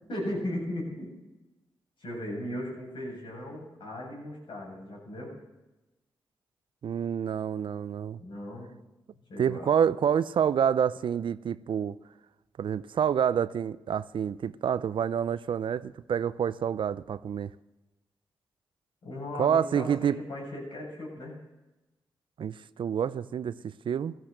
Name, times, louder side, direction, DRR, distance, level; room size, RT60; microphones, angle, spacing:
voice 1, 0.1-1.1 2.0-5.3 8.2-8.7 9.3-9.7 19.0-21.4, left 1 dB, 70° left, -2 dB, 7.5 m, -37 dB
voice 2, 6.8-8.2 9.4-12.0 12.6-17.5 19.4-20.2 22.4-24.2, right 8 dB, 70° right, 17 dB, 0.5 m, -28 dB
15.5 x 14.0 x 6.6 m, 1.0 s
supercardioid pair, 50°, 9 cm